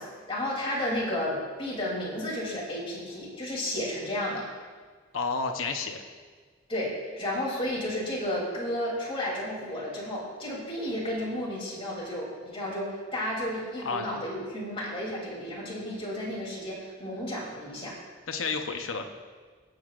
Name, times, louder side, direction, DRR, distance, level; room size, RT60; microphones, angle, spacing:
voice 1, 0.0-4.5 6.7-18.0, left 1 dB, 25° left, -4 dB, 3.0 m, -32 dB
voice 2, 5.1-6.0 13.8-14.0 18.3-19.0, left 4 dB, 75° left, 4 dB, 0.8 m, -30 dB
19.5 x 7.8 x 2.5 m, 1.5 s
head